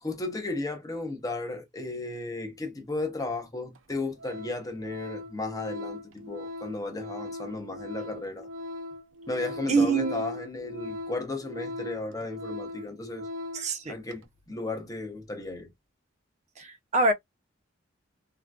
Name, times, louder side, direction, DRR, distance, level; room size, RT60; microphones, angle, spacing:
voice 1, 0.0-8.5 9.3-13.3 13.9-15.7, left 2 dB, 20° left, 0.7 m, -34 dB
Organ, 3.1-3.2 3.8-3.9 4.2-13.8 14.1-14.2, left 1 dB, 80° right, 0.6 m, -39 dB
voice 2, 9.7-10.2 13.5-13.9 16.6-17.1, right 3 dB, 35° right, 0.6 m, -24 dB
3.6 x 2.2 x 2.3 m
head